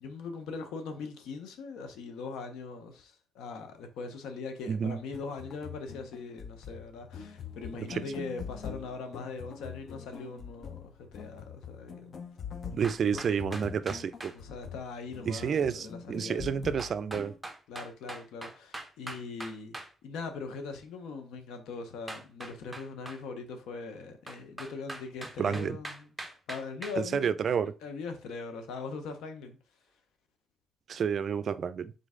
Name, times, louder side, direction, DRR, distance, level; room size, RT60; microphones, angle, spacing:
voice 1, 0.0-12.1 14.3-16.5 17.7-27.4 27.8-29.6, left 4 dB, 90° left, 0.7 m, -41 dB
voice 2, 4.7-5.0 7.7-8.0 12.7-14.3 15.2-17.3 25.4-25.8 27.0-27.7 30.9-31.9, right 7 dB, 55° right, 0.4 m, -30 dB
sound 1, 5.0-17.4, left 7 dB, 55° left, 0.6 m, -44 dB
sound 2, 12.8-14.4 16.8-19.9 22.1-23.2 24.3-27.0, right 2 dB, 10° right, 0.7 m, -42 dB
3.9 x 3.1 x 3.6 m
cardioid pair, 90°, 0 cm